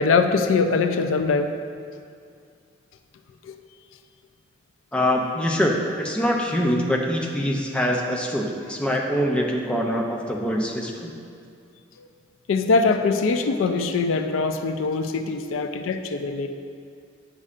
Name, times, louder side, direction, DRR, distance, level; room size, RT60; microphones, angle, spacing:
voice 1, 0.0-1.5 3.5-3.6 12.5-16.5, left 4 dB, 90° left, 7 dB, 0.4 m, -22 dB
voice 2, 4.9-11.1, equal, 5° left, -1 dB, 0.5 m, -24 dB
9.7 x 5.4 x 2.5 m, 2.3 s
head